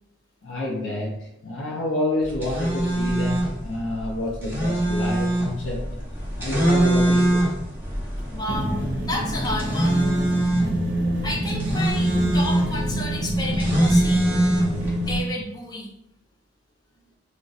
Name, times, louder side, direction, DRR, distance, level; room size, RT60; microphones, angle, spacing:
voice 1, 0.4-6.1 6.4-7.5, left 1 dB, 80° left, -2 dB, 0.5 m, -28 dB
sound 1, 2.2-15.2, right 1 dB, 10° right, 0.9 m, -24 dB
voice 2, 8.3-10.1 11.2-14.4 15.0-15.9, left 1 dB, 20° left, -2 dB, 0.6 m, -31 dB
sound 2, 8.5-15.2, right 1 dB, 60° right, 0.6 m, -26 dB
2.4 x 2.1 x 3.8 m, 0.81 s
head